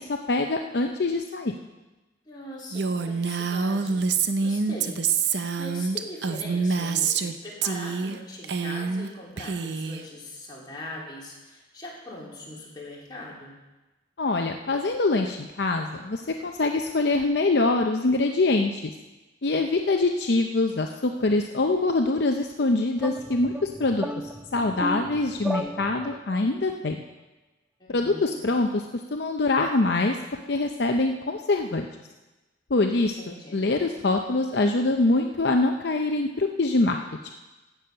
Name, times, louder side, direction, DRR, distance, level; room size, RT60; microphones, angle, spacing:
voice 1, 0.0-1.5 14.2-18.8 19.4-24.1 24.5-27.0 27.9-28.8 29.1-30.2 30.5-31.9 32.7-33.2 33.5-37.0, left 2 dB, 60° left, 4 dB, 0.6 m, -24 dB
voice 2, 2.3-4.1 4.4-13.5 27.8-28.5 33.0-33.6, left 1 dB, 25° left, -5 dB, 2.9 m, -41 dB
Female speech woman speaking, 2.7-7.3 7.6-8.2 8.4-9.1 9.4-10.0, right 5 dB, 60° right, 0.6 m, -26 dB
sound 1, 23.0-26.5, equal, 5° right, 0.5 m, -34 dB
15.5 x 7.0 x 5.7 m, 1.1 s
head